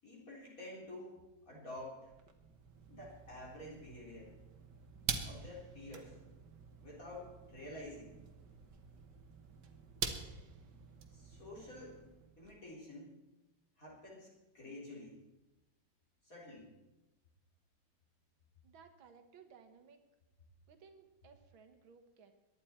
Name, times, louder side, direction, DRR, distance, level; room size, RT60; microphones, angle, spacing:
voice 1, 0.0-2.1 2.9-4.3 5.2-6.2 6.8-8.2 11.1-12.0 12.4-13.2 13.8-15.2 16.2-16.7, left 1 dB, 40° left, -5 dB, 4.0 m, -50 dB
sound 1, 2.0-12.5, right 6 dB, 60° right, 1.7 m, -46 dB
voice 2, 18.6-20.1 20.7-22.3, right 6 dB, 80° right, 7 dB, 2.1 m, -60 dB
22.5 x 10.5 x 4.3 m, 1.0 s
omnidirectional pair, 2.2 m